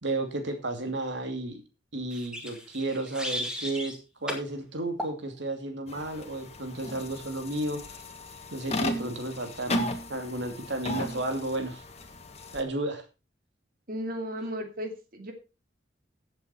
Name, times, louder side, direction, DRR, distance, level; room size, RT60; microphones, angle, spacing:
voice 1, 0.0-1.6 1.9-7.8 8.5-11.8 12.5-13.0, right 2 dB, 65° right, 6 dB, 2.6 m, -33 dB
sound 1, 2.1-4.0 4.3-4.5 5.0-5.2, equal, 5° right, 2.3 m, -35 dB
sound 2, 5.9-12.6, left 1 dB, 35° left, 1.7 m, -36 dB
voice 2, 13.9-15.3, equal, 50° right, 6 dB, 2.6 m, -35 dB
14.5 x 8.1 x 4.4 m, 0.30 s
head